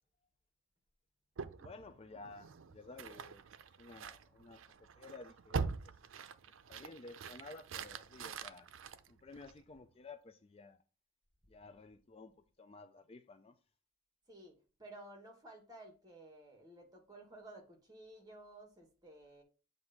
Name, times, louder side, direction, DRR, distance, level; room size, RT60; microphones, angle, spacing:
sound 1, 1.4-9.8, right 5 dB, 80° right, 0.5 m, -44 dB
voice 1, 1.6-3.4 3.8-5.9 6.7-8.7 9.1-10.8 11.5-12.3 12.6-13.5, left 3 dB, 30° left, 0.4 m, -53 dB
voice 2, 14.3-19.4, right 1 dB, 20° right, 1.7 m, -55 dB
7.8 x 2.6 x 5.8 m
head